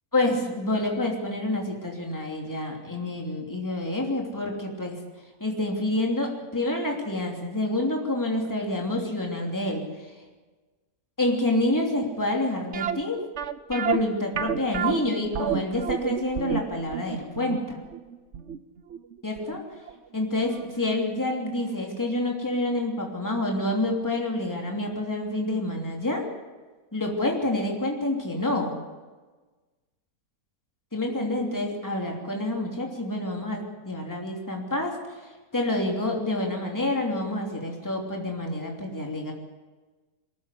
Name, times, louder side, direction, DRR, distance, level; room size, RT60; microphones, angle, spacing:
voice 1, 0.1-4.9 5.4-9.8 11.2-13.2 13.7-17.8 19.2-19.6 20.1-26.3 26.9-28.8 30.9-35.0 35.5-39.3, left 1 dB, 10° left, 1 dB, 3.0 m, -28 dB
sound 1, 12.7-19.6 19.9-20.0 20.5-20.7 21.0-21.1, right 8 dB, 55° right, 1.0 m, -30 dB
22.5 x 14.5 x 8.3 m, 1.3 s
omnidirectional pair, 1.6 m